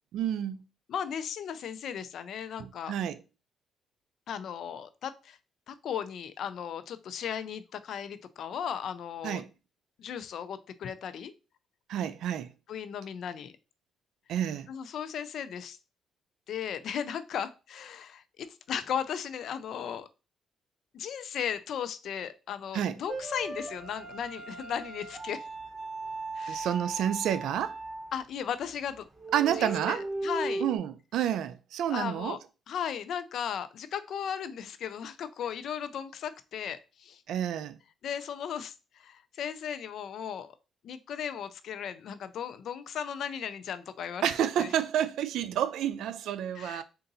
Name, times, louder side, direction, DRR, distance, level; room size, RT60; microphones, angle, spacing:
voice 1, 0.1-0.6 2.6-3.2 9.2-9.5 11.9-12.5 14.3-14.7 22.7-23.0 26.5-27.8 29.3-30.1 30.6-32.4 37.3-37.8 44.2-46.8, right 10 dB, 80° right, 0.4 m, -29 dB
voice 2, 0.9-2.9 4.3-5.4 5.7-9.4 10.0-11.3 12.7-13.5 14.7-15.8 16.5-20.1 20.9-25.5 26.3-26.7 28.1-29.1 29.6-30.0 30.2-30.6 31.9-32.4 32.7-37.2 38.0-40.5 40.8-44.3 44.6-44.7 46.5-46.8, left 8 dB, 70° left, 0.4 m, -36 dB
sound 1, 23.1-28.2 28.6-28.7 29.2-30.8, right 3 dB, 15° right, 2.3 m, -37 dB
3.9 x 2.5 x 3.9 m
cardioid pair, 90°, 0 cm